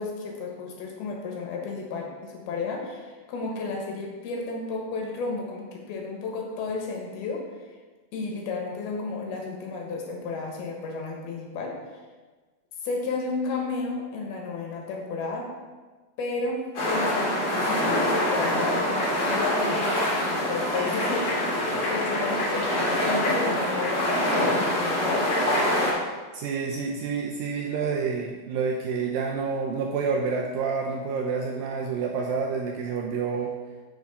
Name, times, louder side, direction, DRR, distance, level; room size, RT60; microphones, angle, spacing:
voice 1, 0.0-7.4 8.1-12.0 12.8-15.5 16.2-25.3, left 4 dB, 75° left, 0 dB, 3.1 m, -33 dB
sound 1, 16.7-25.9, left 1 dB, 40° left, 2.8 m, -25 dB
voice 2, 26.3-33.5, right 5 dB, 80° right, 0 dB, 2.1 m, -28 dB
7.1 x 6.1 x 5.3 m, 1.3 s
omnidirectional pair, 4.6 m